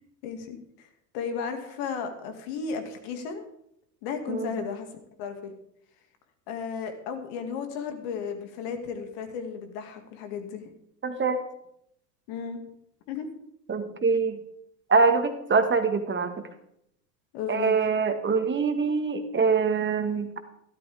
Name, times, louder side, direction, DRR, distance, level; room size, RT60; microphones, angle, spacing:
voice 1, 0.2-0.9 1.1-3.5 4.0-4.9 5.2-5.5 6.5-10.6 12.3-12.6 13.1-13.3 17.3-17.8, left 6 dB, 65° left, 6 dB, 2.3 m, -34 dB
voice 2, 11.0-11.4 13.7-14.4 14.9-16.3 17.5-20.4, right 4 dB, 25° right, 8 dB, 1.6 m, -24 dB
13.5 x 12.5 x 3.6 m, 0.75 s
hypercardioid pair, 85°, 50 cm